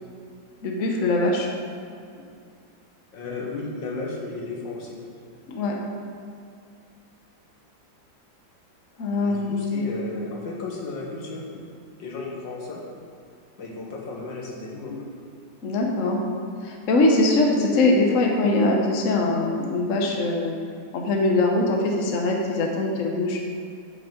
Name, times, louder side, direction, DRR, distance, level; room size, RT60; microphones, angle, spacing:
voice 1, 0.6-1.5 5.5-5.7 9.0-9.8 15.6-16.2 16.6-20.5 20.9-23.4, left 2 dB, 50° left, 0 dB, 1.2 m, -22 dB
voice 2, 3.1-5.0 9.2-11.4 12.0-12.8 13.6-15.2, left 3 dB, 75° left, -2 dB, 2.0 m, -34 dB
8.6 x 6.4 x 5.1 m, 2.4 s
omnidirectional pair, 2.0 m